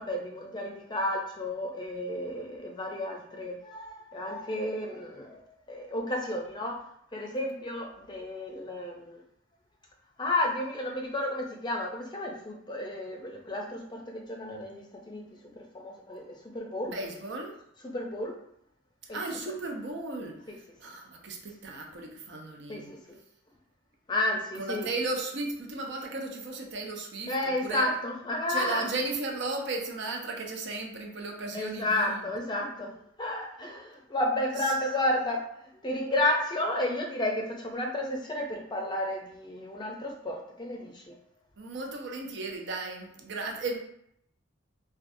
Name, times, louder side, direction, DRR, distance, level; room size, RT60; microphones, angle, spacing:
voice 1, 0.0-5.4 5.7-6.8 7.1-9.2 10.2-15.2 15.6-16.9 17.8-18.3 19.1-19.2 22.7-23.2 24.1-24.9 27.3-28.8 31.5-32.9 33.2-35.4 35.8-41.2, left 1 dB, 20° left, 1 dB, 0.5 m, -32 dB
voice 2, 16.8-17.5 19.1-22.9 24.5-27.9 28.5-32.3 34.6-34.7 41.6-43.8, right 3 dB, 60° right, 2 dB, 0.6 m, -35 dB
4.5 x 2.3 x 2.6 m, 0.73 s
head